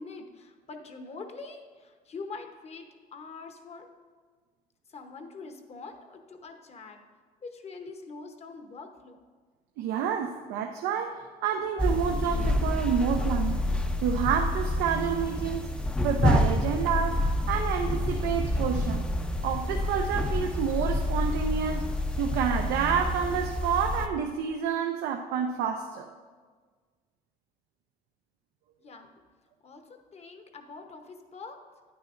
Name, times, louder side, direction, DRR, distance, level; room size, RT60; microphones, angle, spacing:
voice 1, 0.0-3.9 4.9-7.0 7.4-9.2 28.8-29.1 29.6-31.6, left 4 dB, 40° left, 6 dB, 0.9 m, -44 dB
voice 2, 9.8-13.6 14.0-15.7 16.0-19.1 19.4-21.9 22.2-26.1, right 7 dB, 90° right, 4 dB, 0.5 m, -29 dB
sound 1, 11.8-24.1, left 1 dB, 5° left, 0.5 m, -28 dB
9.8 x 9.5 x 2.5 m, 1.5 s
cardioid pair, 110°, 17 cm